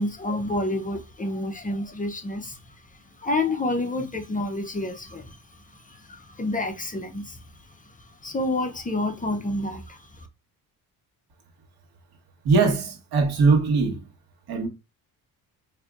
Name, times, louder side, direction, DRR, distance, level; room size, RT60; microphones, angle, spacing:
voice 1, 0.0-2.7 3.2-5.4 5.7-7.4 8.0-10.3, left 2 dB, 20° left, 0.5 m, -29 dB
voice 2, 12.4-14.0 14.5-14.7, right 4 dB, 65° right, 1.2 m, -21 dB
4.9 x 2.6 x 2.3 m
cardioid pair, 110°, 41 cm